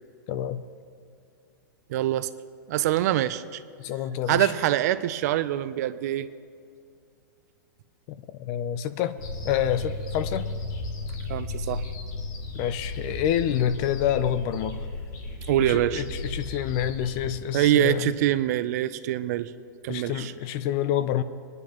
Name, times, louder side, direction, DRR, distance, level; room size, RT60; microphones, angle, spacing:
voice 1, 0.3-0.6 3.8-4.5 8.1-9.2 9.4-10.5 12.5-14.8 15.6-18.1 19.9-21.2, left 10 dB, 35° left, 13 dB, 0.5 m, -28 dB
voice 2, 1.9-2.3 2.7-3.6 4.3-6.3 11.3-11.8 15.5-16.0 17.5-19.5 19.8-20.3, right 13 dB, 50° right, 14 dB, 0.5 m, -24 dB
sound 1, 9.2-17.3, left 2 dB, 65° left, 2.6 m, -34 dB
20.0 x 10.5 x 3.0 m, 2.4 s
hypercardioid pair, 150°, 11 cm